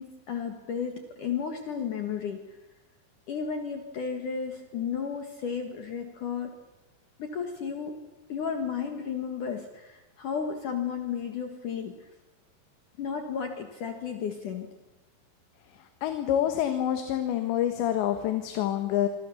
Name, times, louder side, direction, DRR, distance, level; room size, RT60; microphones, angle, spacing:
voice 1, 0.0-2.4 3.3-6.5 7.2-7.9 8.3-11.9 13.0-14.7, left 7 dB, 55° left, 5 dB, 2.7 m, -33 dB
voice 2, 16.0-19.1, left 11 dB, 75° left, 7 dB, 3.6 m, -27 dB
26.0 x 26.0 x 7.2 m, 1.1 s
omnidirectional pair, 5.3 m